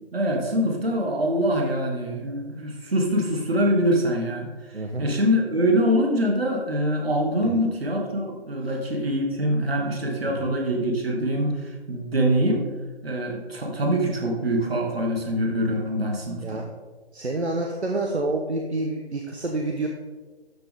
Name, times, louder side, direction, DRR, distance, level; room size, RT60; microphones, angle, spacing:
voice 1, 0.1-12.6 13.0-16.6, equal, 65° right, 1 dB, 2.6 m, -24 dB
voice 2, 4.7-5.1 7.4-7.6 10.2-10.5 16.4-16.7 17.1-19.9, right 2 dB, 80° right, 2 dB, 1.3 m, -28 dB
12.0 x 6.9 x 3.8 m, 1.3 s
figure-of-eight pair, 150°, 33 cm